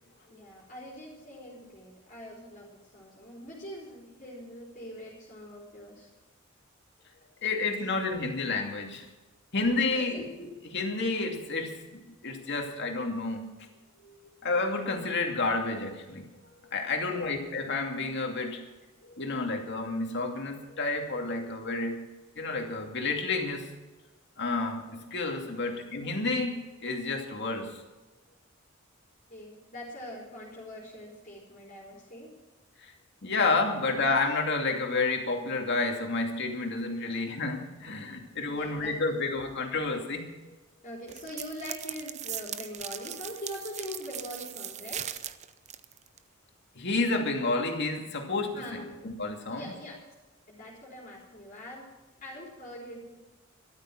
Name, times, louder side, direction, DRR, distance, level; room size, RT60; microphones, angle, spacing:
voice 1, 0.3-6.1 9.9-10.2 17.1-17.4 18.6-18.9 25.6-25.7 29.3-32.3 37.1-37.2 38.5-39.2 40.8-45.1 48.5-49.0 49.5-50.0 50.5-51.9 52.2-53.2, equal, 40° left, -5 dB, 4.0 m, -43 dB
voice 2, 7.4-9.1 9.5-10.2 10.6-13.5 14.0-14.2 14.4-16.3 16.7-18.6 19.2-22.1 22.4-23.7 24.4-27.7 32.8-32.9 33.2-40.3 46.8-49.7, left 3 dB, 55° left, 3 dB, 2.5 m, -30 dB
sound 1, 41.1-46.2, right 10 dB, 35° right, 0.7 m, -39 dB
13.5 x 13.0 x 6.0 m, 1.2 s
head